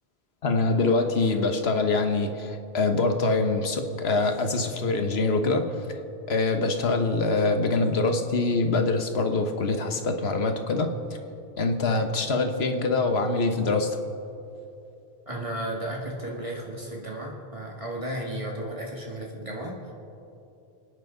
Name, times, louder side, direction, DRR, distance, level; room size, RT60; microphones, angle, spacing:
voice 1, 0.4-5.7 6.3-10.9 11.6-14.0, left 3 dB, 75° left, 6 dB, 1.4 m, -24 dB
voice 2, 15.3-19.9, right 1 dB, 30° right, -2 dB, 1.8 m, -34 dB
29.5 x 9.9 x 3.9 m, 2.8 s
omnidirectional pair, 1.1 m